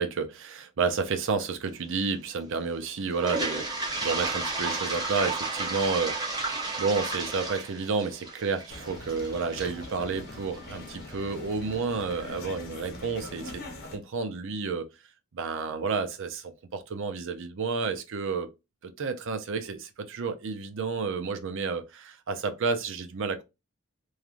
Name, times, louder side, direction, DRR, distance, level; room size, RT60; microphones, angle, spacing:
voice 1, 0.0-13.6 13.9-14.9 15.3-18.5 18.8-23.4, right 4 dB, 65° right, 0.5 m, -31 dB
Toilet flush, 3.1-11.0, right 3 dB, 20° right, 0.9 m, -33 dB
sound 1, 8.7-14.0, left 2 dB, 45° left, 0.8 m, -42 dB
3.1 x 2.4 x 2.5 m
head